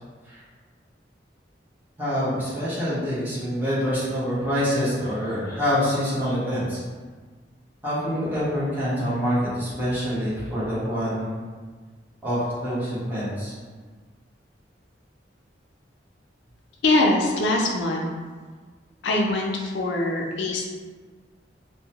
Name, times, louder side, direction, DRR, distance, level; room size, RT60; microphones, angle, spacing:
voice 1, 2.0-6.8 7.8-11.4 12.2-13.5, equal, 10° right, -11 dB, 0.9 m, -26 dB
voice 2, 16.8-18.0 19.0-20.7, left 2 dB, 85° left, 0 dB, 0.4 m, -23 dB
2.6 x 2.1 x 2.8 m, 1.5 s
head